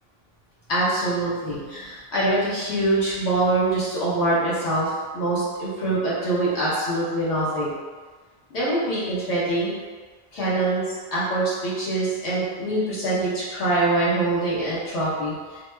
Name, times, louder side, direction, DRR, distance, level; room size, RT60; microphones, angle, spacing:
voice 1, 0.7-7.7 8.5-9.7 10.3-15.6, right 2 dB, 80° left, -9 dB, 1.3 m, -24 dB
2.8 x 2.1 x 3.2 m, 1.4 s
omnidirectional pair, 1.1 m